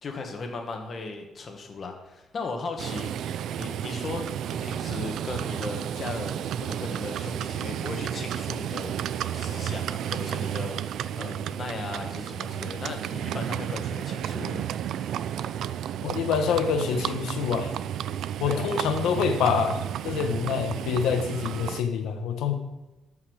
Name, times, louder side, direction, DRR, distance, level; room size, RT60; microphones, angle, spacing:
voice 1, 0.0-3.1 3.6-14.7 18.4-18.9, left 3 dB, 35° left, 4 dB, 1.7 m, -37 dB
Livestock farm animals working animals, 2.8-21.8, right 10 dB, 70° right, 0.4 m, -32 dB
voice 2, 16.0-17.7 18.4-22.5, left 6 dB, 90° left, 7 dB, 1.3 m, -26 dB
13.5 x 5.8 x 6.4 m, 1.0 s
cardioid pair, 145°, 0 cm